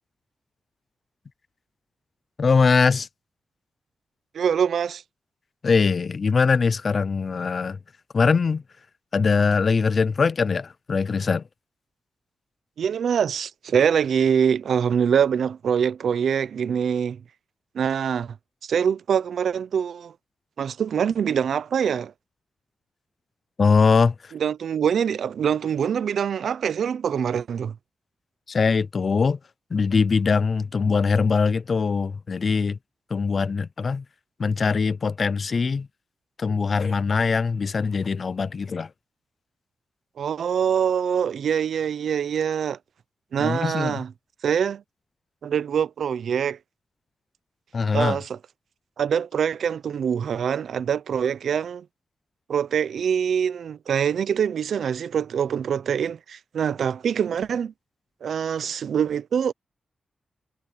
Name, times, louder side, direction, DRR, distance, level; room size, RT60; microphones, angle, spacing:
voice 1, 2.4-3.1 5.6-7.8 8.1-8.6 9.1-11.4 23.6-24.3 28.5-29.4 29.7-32.8 33.1-34.0 34.4-35.9 36.4-38.9 43.4-44.0 47.7-48.2, left 5 dB, 45° left, 0.4 m, -22 dB
voice 2, 4.3-5.0 12.8-17.2 17.7-18.4 18.6-20.1 20.6-22.1 24.3-27.7 40.2-42.8 43.3-44.1 44.4-44.8 45.4-46.6 47.9-48.4 49.0-51.8 52.5-57.7 58.2-59.5, right 7 dB, 85° right, 0.6 m, -24 dB
wide cardioid pair, 145°, 0 cm